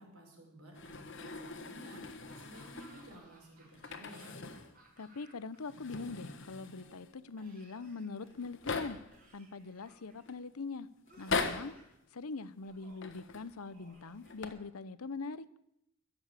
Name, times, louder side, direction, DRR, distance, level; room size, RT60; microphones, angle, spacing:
voice 1, 0.0-4.3, equal, 90° right, 1 dB, 5.2 m, -54 dB
sound 1, 0.7-3.2 3.7-4.8 5.0-5.1 5.6-7.1 7.9-8.0 8.2-9.2 9.8-10.3 11.1-11.8 12.9-13.5 14.2-14.5, left 4 dB, 60° left, 1.4 m, -40 dB
Laughter / Cough, 2.2-5.6 5.8-6.7 7.4-8.5 9.1-10.3 11.1-12.0 12.6-13.2 13.7-14.9, right 2 dB, 40° right, 4.5 m, -62 dB
voice 2, 5.0-9.0 9.3-10.9 11.2-11.7 12.1-15.4, left 4 dB, 85° left, 17 dB, 0.8 m, -42 dB
sound 2, 6.8-10.0, equal, 20° right, 2.9 m, -68 dB
21.5 x 7.2 x 8.1 m, 0.79 s
head